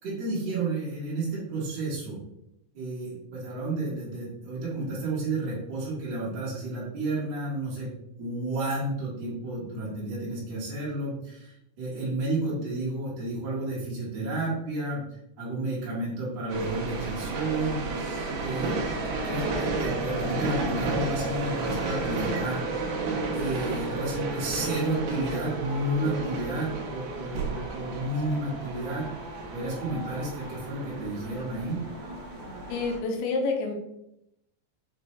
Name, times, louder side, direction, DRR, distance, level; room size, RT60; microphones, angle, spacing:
voice 1, 0.0-2.2 2.7-7.9 8.2-17.8 18.4-18.9 19.2-22.7 23.3-29.1 29.5-31.8, right 2 dB, 55° right, -8 dB, 2.0 m, -31 dB
sound 1, 16.5-33.0, right 3 dB, 75° right, 2.0 m, -32 dB
voice 2, 32.7-33.7, left 3 dB, 85° left, 2 dB, 2.6 m, -28 dB
6.2 x 2.6 x 3.1 m, 0.81 s
omnidirectional pair, 4.7 m